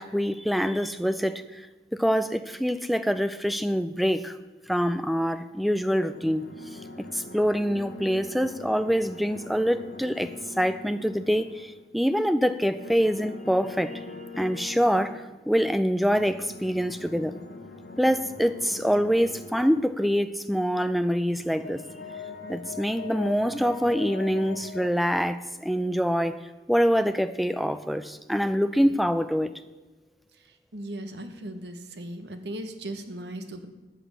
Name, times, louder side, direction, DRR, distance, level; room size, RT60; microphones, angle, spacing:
voice 1, 0.0-1.6 1.9-4.4 4.7-6.5 7.1-14.0 14.4-17.4 18.0-21.8 22.5-26.4 26.7-29.5, equal, ahead, 12 dB, 0.4 m, -25 dB
sound 1, 5.8-11.9 12.7-15.3 16.0-19.8 21.1-24.9, left 3 dB, 75° left, 1.8 m, -42 dB
voice 2, 30.7-33.7, right 1 dB, 80° right, 8 dB, 1.3 m, -37 dB
12.5 x 6.0 x 8.1 m, 1.2 s
head